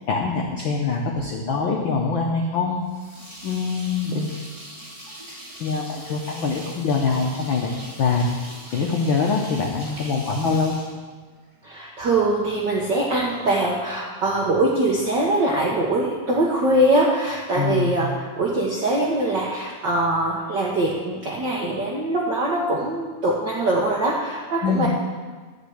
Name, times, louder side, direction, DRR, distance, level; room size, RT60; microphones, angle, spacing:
voice 1, 0.1-2.8 3.4-4.4 5.6-7.7 8.0-8.3 8.7-10.7 17.6-18.0 24.6-24.9, left 4 dB, 80° left, 0 dB, 1.1 m, -24 dB
sound 1, 2.8-11.6, right 1 dB, 15° right, 2.4 m, -41 dB
voice 2, 11.6-24.9, right 1 dB, 70° right, -3 dB, 1.0 m, -22 dB
11.5 x 5.0 x 7.9 m, 1.4 s
omnidirectional pair, 3.5 m